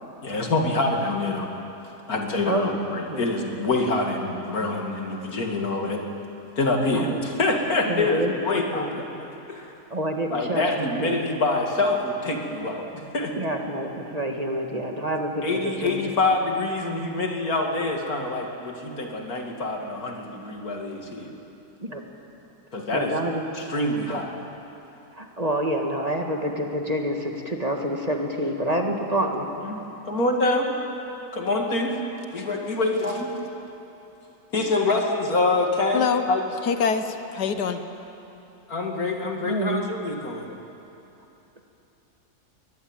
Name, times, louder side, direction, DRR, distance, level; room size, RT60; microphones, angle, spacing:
voice 1, 0.2-1.5 2.1-6.0 6.6-9.0 9.5-9.7 10.3-13.3 14.7-14.8 15.4-21.3 22.7-23.1 23.7-24.3 29.6-29.8 30.1-30.8 31.3-32.0 32.3-33.3 34.5-36.4 38.7-40.5, left 2 dB, 65° left, 2 dB, 2.9 m, -25 dB
voice 2, 2.5-2.8 3.1-3.2 6.9-7.2 7.9-8.3 8.7-8.9 9.9-10.6 11.0-11.2 13.4-16.1 21.8-22.0 22.9-23.4 24.1-24.2 25.1-29.5 39.4-39.8, right 1 dB, 25° right, 2 dB, 1.8 m, -27 dB
voice 3, 35.9-36.3 36.6-37.8, left 6 dB, 90° left, 8 dB, 1.7 m, -24 dB
22.0 x 21.5 x 9.1 m, 3.0 s
omnidirectional pair, 1.7 m